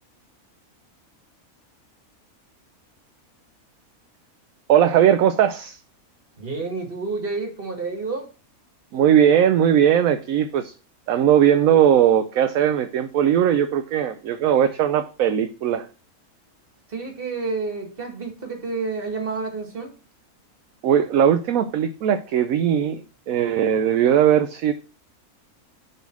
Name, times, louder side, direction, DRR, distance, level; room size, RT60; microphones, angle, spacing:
voice 1, 4.7-5.8 8.9-10.7 11.1-15.9 20.8-24.7, right 9 dB, 70° right, 1.0 m, -19 dB
voice 2, 6.4-8.3 16.9-20.0, right 4 dB, 40° right, 2.1 m, -29 dB
6.9 x 4.2 x 6.2 m
omnidirectional pair, 1.5 m